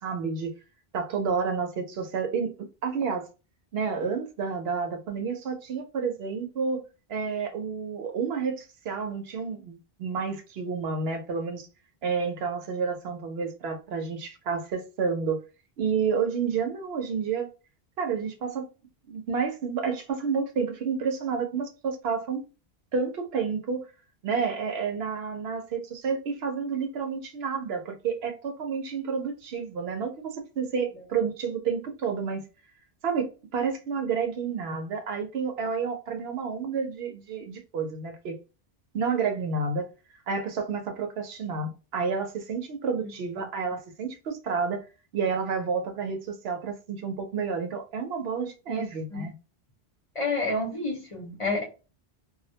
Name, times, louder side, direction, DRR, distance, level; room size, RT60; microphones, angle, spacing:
voice 1, 0.0-0.5 0.9-2.5 2.8-3.3 3.7-6.8 7.1-11.7 12.0-15.4 15.8-17.5 18.0-18.7 19.1-22.4 22.9-23.8 24.2-32.5 33.0-38.3 38.9-39.9 40.3-44.8 45.1-49.3, right 5 dB, 75° right, 0.8 m, -30 dB
voice 2, 50.1-51.6, left 2 dB, 35° left, 0.7 m, -29 dB
2.2 x 2.0 x 2.7 m
omnidirectional pair, 1.1 m